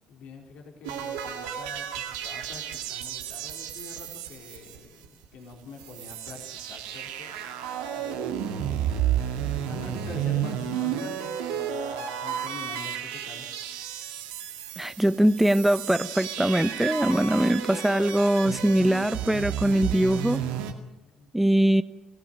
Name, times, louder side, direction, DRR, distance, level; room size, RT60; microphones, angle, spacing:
voice 1, 0.1-7.3 7.9-13.5 21.0-21.3, left 4 dB, 70° left, 4.2 m, -45 dB
sound 1, 0.8-5.2 5.5-5.6 5.8-20.7, right 10 dB, 85° right, 2.2 m, -32 dB
voice 2, 14.8-20.4 21.3-21.8, right 1 dB, 5° right, 1.1 m, -22 dB
25.0 x 16.5 x 9.1 m
hypercardioid pair, 50°, 2 cm